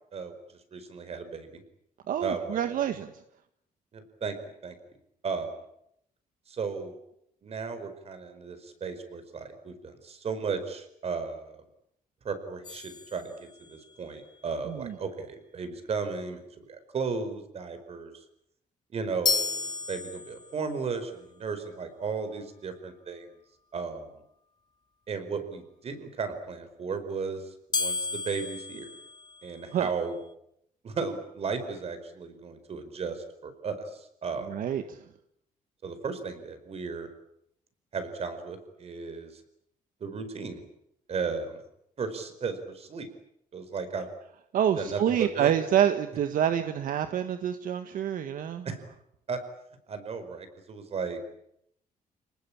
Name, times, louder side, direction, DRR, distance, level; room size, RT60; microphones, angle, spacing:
voice 1, 0.7-1.6 2.2-2.6 3.9-4.4 4.6-4.8 5.2-5.6 6.5-6.9 7.4-11.6 12.2-16.4 16.7-18.2 18.9-23.3 23.7-24.1 25.1-28.9 29.4-30.2 30.8-34.5 35.8-37.1 37.9-39.4 40.0-40.6 41.1-41.6 42.0-43.1 43.5-44.1 44.8-45.5 48.6-48.8 49.3-49.4 49.9-51.2, right 5 dB, 45° right, 9 dB, 4.8 m, -35 dB
voice 2, 2.1-3.1 14.7-14.9 29.7-29.9 34.5-35.0 44.5-48.7, right 9 dB, 70° right, 8 dB, 1.6 m, -27 dB
sound 1, 12.6-13.9 19.2-20.7 27.7-29.9, left 4 dB, 30° left, 1.0 m, -33 dB
30.0 x 19.5 x 8.7 m, 0.76 s
cardioid pair, 145°, 14 cm